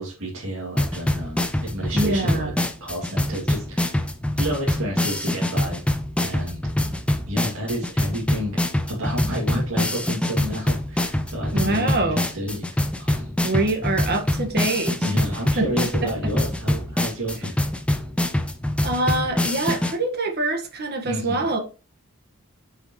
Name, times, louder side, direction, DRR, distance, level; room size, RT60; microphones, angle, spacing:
voice 1, 0.0-2.5 2.8-4.1 4.4-5.9 6.2-6.6 6.9-8.6 8.9-12.7 13.0-13.6 15.0-17.5 21.0-21.5, equal, 65° right, 2.5 m, -30 dB
sound 1, 0.8-19.9, left 1 dB, 5° left, 0.7 m, -25 dB
voice 2, 1.9-2.6 11.5-12.2 13.4-15.1 15.5-15.6 18.8-21.6, right 2 dB, 50° right, 1.7 m, -24 dB
9.9 x 5.4 x 3.2 m
head